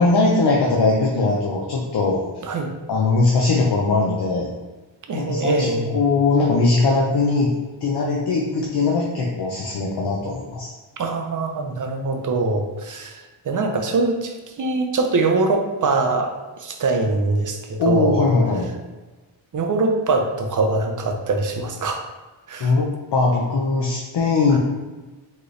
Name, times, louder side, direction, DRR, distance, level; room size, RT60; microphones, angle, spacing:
voice 1, 0.0-2.2 2.9-4.5 5.1-7.5 7.8-10.7 17.8-18.7 22.6-24.6, left 3 dB, 55° left, -2 dB, 0.6 m, -20 dB
voice 2, 5.1-6.0 11.0-16.3 16.6-18.3 19.5-22.0 22.5-22.7, right 3 dB, 40° right, 4 dB, 0.5 m, -23 dB
4.6 x 3.1 x 3.1 m, 1.2 s
wide cardioid pair, 175°, 48 cm